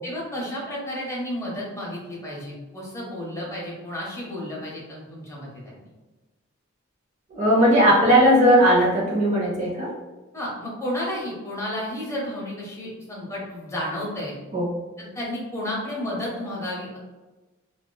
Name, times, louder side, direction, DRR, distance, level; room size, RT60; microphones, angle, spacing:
voice 1, 0.0-5.9 10.3-14.3 15.0-17.0, left 1 dB, 15° left, -5 dB, 0.7 m, -32 dB
voice 2, 7.3-9.9 14.5-14.7, equal, 35° right, -4 dB, 0.6 m, -18 dB
2.7 x 2.2 x 2.2 m, 1.2 s
head